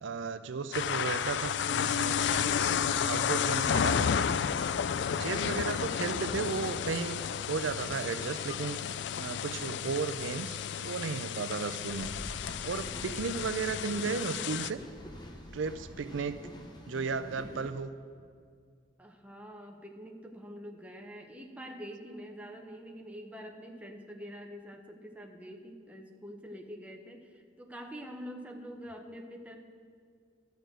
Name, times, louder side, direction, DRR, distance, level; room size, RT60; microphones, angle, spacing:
voice 1, 0.0-2.6 2.9-4.4 5.2-7.2 7.5-8.8 9.1-12.1 12.6-14.8 15.5-16.4 16.9-17.9, right 5 dB, 80° right, 11 dB, 0.5 m, -34 dB
sound 1, 0.7-14.7, left 7 dB, 65° left, 0.3 m, -32 dB
sound 2, 11.8-17.7, left 1 dB, 25° left, 0.9 m, -46 dB
voice 2, 19.0-29.5, equal, 5° right, 2 dB, 0.9 m, -45 dB
12.0 x 6.4 x 7.7 m, 2.1 s
head